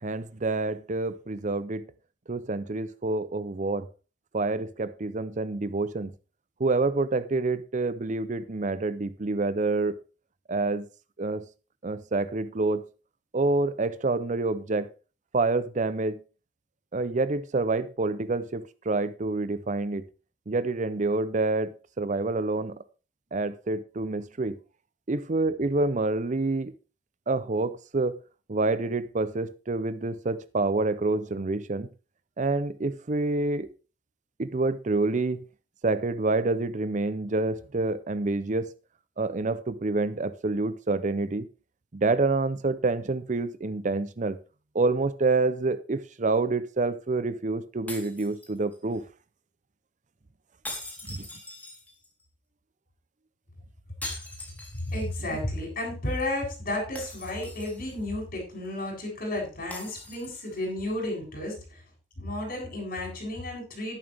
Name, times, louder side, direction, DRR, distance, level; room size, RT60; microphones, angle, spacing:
voice 1, 0.0-1.9 2.3-3.9 4.3-6.1 6.6-10.0 10.5-10.9 11.2-11.5 11.8-12.8 13.3-14.9 15.3-16.2 16.9-20.1 20.5-22.8 23.3-24.6 25.1-26.7 27.3-28.2 28.5-31.9 32.4-33.7 34.4-35.4 35.8-38.7 39.2-41.5 41.9-44.4 44.7-49.0 51.1-51.3 55.3-55.4, right 3 dB, 45° right, 0.6 m, -27 dB
sound 1, 47.9-49.0 50.6-52.2 54.0-55.2 55.5-55.6 57.0-58.0 59.7-60.6, left 2 dB, 10° left, 3.6 m, -42 dB
voice 2, 54.9-61.6 62.2-64.0, left 1 dB, 55° left, 7.8 m, -32 dB
12.0 x 11.0 x 3.5 m
head